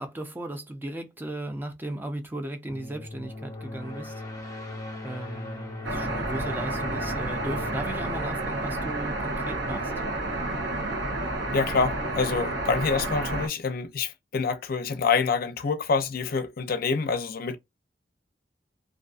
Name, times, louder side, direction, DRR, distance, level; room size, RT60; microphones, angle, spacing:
voice 1, 0.0-4.2 5.0-9.9, right 1 dB, 10° right, 0.4 m, -36 dB
sound 1, 2.7-9.4, left 2 dB, 20° left, 0.9 m, -40 dB
sound 2, 5.8-13.5, right 2 dB, 85° right, 0.9 m, -30 dB
voice 2, 11.5-17.6, left 5 dB, 55° left, 0.5 m, -26 dB
2.5 x 2.4 x 2.3 m
head